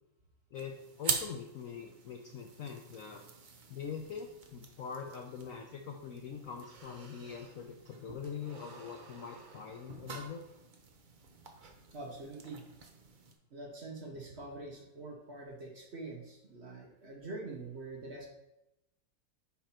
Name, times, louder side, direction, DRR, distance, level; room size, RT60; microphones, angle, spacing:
voice 1, 0.5-3.2 3.7-10.4, left 6 dB, 70° left, 2 dB, 0.8 m, -43 dB
sound 1, 0.5-13.3, right 5 dB, 75° right, 0.4 m, -44 dB
voice 2, 11.9-12.6 13.5-18.3, right 2 dB, 45° right, 0 dB, 1.0 m, -45 dB
5.7 x 5.1 x 4.3 m, 0.90 s
omnidirectional pair, 1.9 m